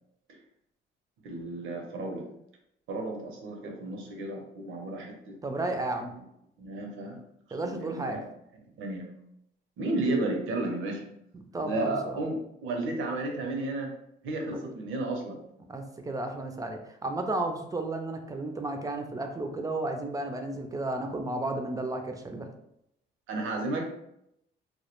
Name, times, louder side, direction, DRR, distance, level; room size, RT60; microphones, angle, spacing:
voice 1, 1.2-2.2 2.9-5.4 5.7-5.8 6.6-7.2 7.5-8.2 8.8-9.1 9.8-11.0 11.6-13.9 14.2-15.4 23.3-23.9, right 2 dB, 85° right, 2 dB, 0.6 m, -33 dB
voice 2, 5.4-6.2 7.5-8.2 11.3-12.2 14.5-14.6 15.7-22.5, right 2 dB, 20° right, 5 dB, 0.4 m, -33 dB
2.2 x 2.1 x 2.9 m, 0.78 s
cardioid pair, 90°, 20 cm